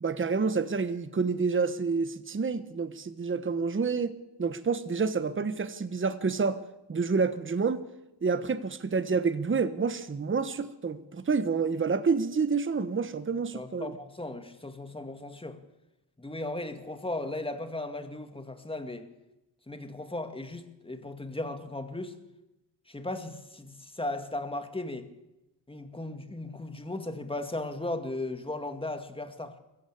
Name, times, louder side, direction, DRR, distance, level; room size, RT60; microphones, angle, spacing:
voice 1, 0.0-4.1 4.4-6.6 6.9-7.8 8.2-13.9, right 5 dB, 25° right, 1.2 m, -28 dB
voice 2, 13.5-15.6 16.2-19.1 19.7-22.2 22.9-25.1 25.7-29.6, left 2 dB, 10° left, 2.2 m, -36 dB
22.0 x 15.0 x 8.6 m
cardioid pair, 90°, 45 cm